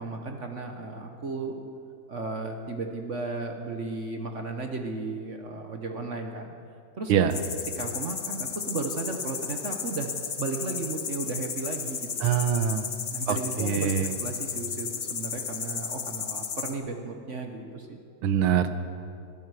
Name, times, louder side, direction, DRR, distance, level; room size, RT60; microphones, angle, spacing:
voice 1, 0.0-1.6 2.1-6.5 7.0-7.4 7.8-12.3 13.1-13.9 14.2-18.0, right 3 dB, 45° right, 4 dB, 1.0 m, -34 dB
sound 1, 7.3-16.7, left 6 dB, 50° left, 0.8 m, -34 dB
voice 2, 12.2-12.9 13.3-14.1 18.2-18.7, right 8 dB, 90° right, 10 dB, 1.7 m, -24 dB
20.0 x 13.5 x 4.9 m, 2.4 s
omnidirectional pair, 2.3 m